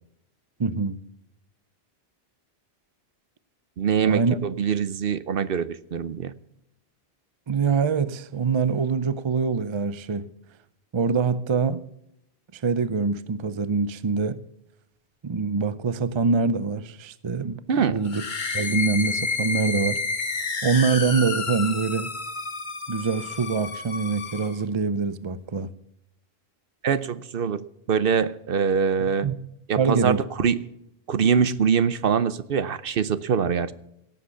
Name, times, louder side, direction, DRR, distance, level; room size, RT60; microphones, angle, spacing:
voice 1, 0.6-1.0 4.1-4.4 7.5-10.3 10.9-11.8 12.5-14.4 15.2-18.2 18.5-20.0 20.6-22.1 22.9-25.7 29.2-29.4 29.8-30.2, right 5 dB, 35° right, 0.6 m, -24 dB
voice 2, 3.8-6.3 17.7-18.0 26.8-29.3 29.7-30.7 31.1-33.7, right 6 dB, 60° right, 0.9 m, -24 dB
sound 1, 18.0-24.6, left 4 dB, 50° left, 1.4 m, -30 dB
17.5 x 7.8 x 7.0 m
omnidirectional pair, 1.1 m